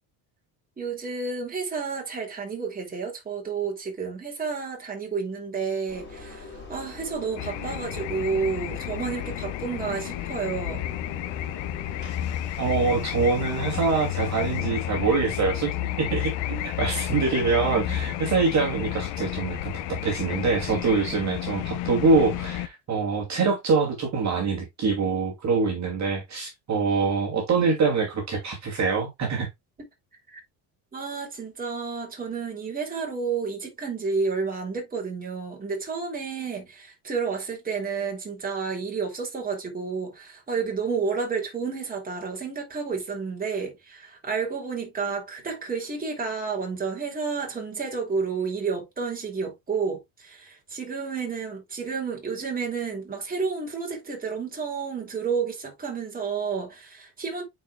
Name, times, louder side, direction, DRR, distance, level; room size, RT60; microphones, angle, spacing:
voice 1, 0.8-10.8 30.3-30.4 30.9-57.4, right 5 dB, 20° right, 3.1 m, -30 dB
Engine, 5.9-14.6, left 3 dB, 25° left, 3.3 m, -42 dB
sound 1, 7.4-22.7, left 13 dB, 70° left, 0.9 m, -31 dB
voice 2, 12.6-29.5, right 4 dB, 35° right, 2.5 m, -25 dB
8.7 x 4.9 x 2.3 m
cardioid pair, 135°, 45 cm